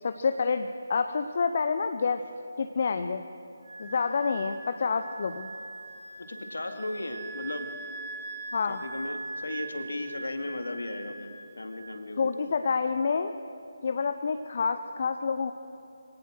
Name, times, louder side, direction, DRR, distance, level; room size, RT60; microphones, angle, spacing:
voice 1, 0.0-2.2 2.6-3.2 3.8-5.5 8.5-8.8 12.2-13.3 13.8-15.5, left 5 dB, 45° left, 8 dB, 0.7 m, -28 dB
Wind instrument woodwind instrument, 3.6-11.9, right 3 dB, 10° right, 3.8 m, -41 dB
voice 2, 6.2-7.7 8.6-11.3 11.6-12.3, left 2 dB, 65° left, 5 dB, 2.3 m, -36 dB
24.0 x 18.5 x 6.4 m, 2.8 s
figure-of-eight pair, 150°, 0 cm